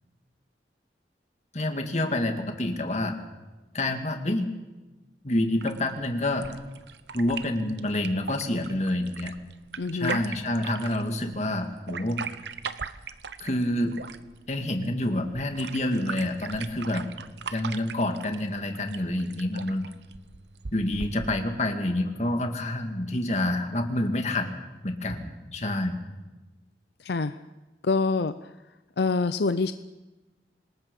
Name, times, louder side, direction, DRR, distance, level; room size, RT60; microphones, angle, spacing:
voice 1, 1.5-3.1 3.7-4.5 5.2-6.5 7.1-9.3 9.9-12.2 13.4-13.9 14.5-17.0 17.5-19.8 20.7-24.5 24.8-26.0, left 1 dB, 40° left, 5 dB, 2.2 m, -28 dB
sound 1, 5.6-21.6, right 5 dB, 80° right, 0.9 m, -40 dB
voice 2, 9.8-10.2 27.0-27.4 27.8-28.5 29.0-29.7, left 3 dB, 70° left, 11 dB, 0.6 m, -26 dB
26.5 x 19.5 x 5.5 m, 1.1 s
head